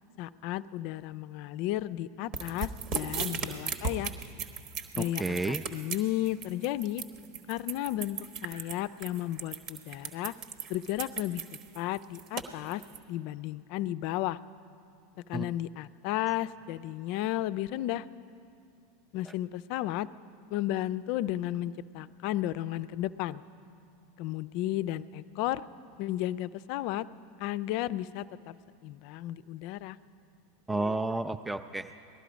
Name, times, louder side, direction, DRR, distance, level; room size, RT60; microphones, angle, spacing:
voice 1, 0.2-4.1 4.9-7.0 7.5-10.3 10.7-11.4 11.7-12.8 13.1-14.4 15.3-18.1 19.1-20.1 20.5-23.4 24.2-25.7 26.0-27.1 27.4-28.6 28.8-30.0, left 14 dB, 55° left, 16 dB, 0.4 m, -33 dB
sound 1, 2.3-13.0, right 6 dB, 50° right, 1.2 m, -36 dB
voice 2, 5.0-5.6 15.3-15.5 19.3-19.4 30.7-31.9, right 2 dB, 10° right, 8 dB, 0.4 m, -31 dB
19.0 x 12.0 x 5.1 m, 2.5 s
hypercardioid pair, 90°, 0 cm